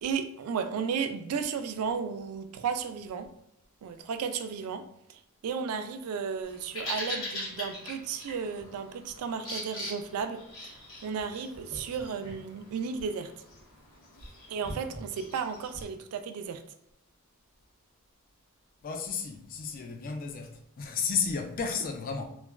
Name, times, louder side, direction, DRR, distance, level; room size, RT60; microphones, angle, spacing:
voice 1, 0.0-3.3 3.8-13.3 14.5-16.6, right 6 dB, 85° right, 0.3 m, -34 dB
Bird vocalization bird call bird song, 6.4-15.8, left 1 dB, 65° left, 1.1 m, -42 dB
voice 2, 18.8-22.2, left 5 dB, 40° left, 0.3 m, -33 dB
3.1 x 2.2 x 2.3 m
head